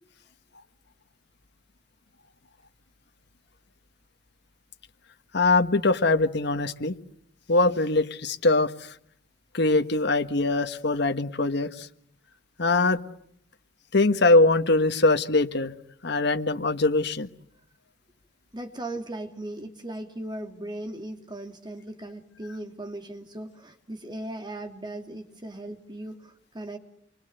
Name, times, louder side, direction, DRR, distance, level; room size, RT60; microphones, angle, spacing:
voice 1, 5.3-6.9 7.5-8.9 9.5-11.9 12.6-13.0 13.9-15.7 16.0-17.3, left 2 dB, 65° left, 7 dB, 1.5 m, -22 dB
voice 2, 18.5-26.8, right 1 dB, 25° right, 5 dB, 3.0 m, -38 dB
28.0 x 24.5 x 8.1 m, 0.71 s
head